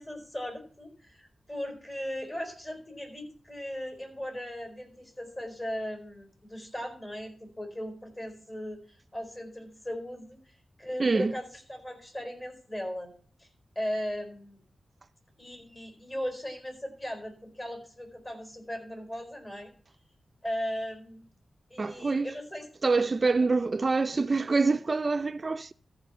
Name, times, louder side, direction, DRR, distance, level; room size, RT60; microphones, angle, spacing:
voice 1, 0.0-13.1 13.4-13.5 13.7-14.6 15.4-19.7 20.4-21.2 21.7-22.6, equal, 30° left, 4.7 m, -38 dB
voice 2, 11.0-11.3 21.8-22.3 22.8-25.7, right 3 dB, 40° right, 0.4 m, -26 dB
14.0 x 4.9 x 7.1 m
wide cardioid pair, 85°, 0 cm